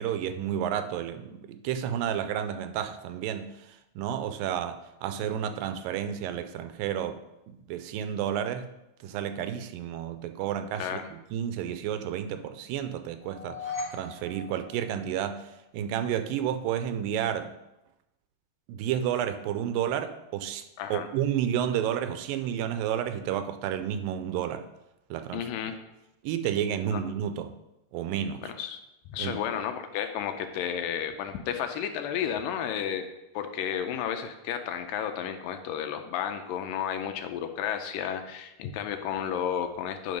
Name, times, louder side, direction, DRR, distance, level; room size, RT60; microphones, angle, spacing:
voice 1, 0.0-3.5 4.0-7.2 7.5-8.7 9.0-17.6 18.7-20.6 20.9-24.7 25.1-25.5 26.2-27.5 27.9-28.5 29.2-29.4, right 9 dB, 85° right, 9 dB, 2.2 m, -31 dB
sound 1, 13.2-15.5, left 3 dB, 10° left, 1.7 m, -39 dB
voice 2, 25.3-25.8 26.9-27.0 28.4-28.8 29.1-33.1 33.3-40.2, left 9 dB, 80° left, 7 dB, 2.3 m, -32 dB
10.0 x 3.8 x 5.2 m, 0.93 s
omnidirectional pair, 4.0 m